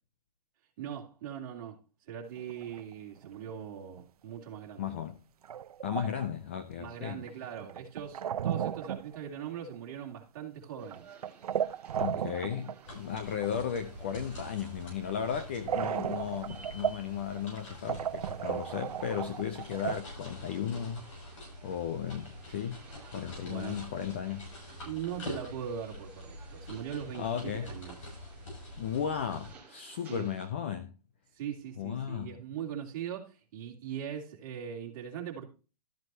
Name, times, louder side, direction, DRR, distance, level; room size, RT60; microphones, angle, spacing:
voice 1, 0.8-1.8 2.1-4.9 6.8-11.0 23.4-23.9 24.8-28.1 30.1-30.3 31.3-35.5, right 9 dB, 30° right, 2.9 m, -40 dB
sound 1, 2.4-2.9 3.2-3.5 4.0-4.1 4.3-4.4 5.4-6.3 7.3-9.3 9.6-10.1 10.8-12.8 13.1-13.5 15.7-17.1 17.6-17.7 17.9-20.0, right 9 dB, 65° right, 0.7 m, -34 dB
voice 2, 4.8-5.2 5.8-7.2 12.0-21.0 21.6-22.8 23.1-24.5 27.1-27.7 28.8-30.9 31.8-32.3, left 8 dB, 20° left, 0.4 m, -35 dB
sound 2, 10.8-30.5, right 4 dB, 5° right, 2.1 m, -57 dB
sound 3, 12.8-29.5, left 1 dB, 50° left, 6.7 m, -46 dB
13.5 x 7.8 x 2.7 m
hypercardioid pair, 175°, 20 cm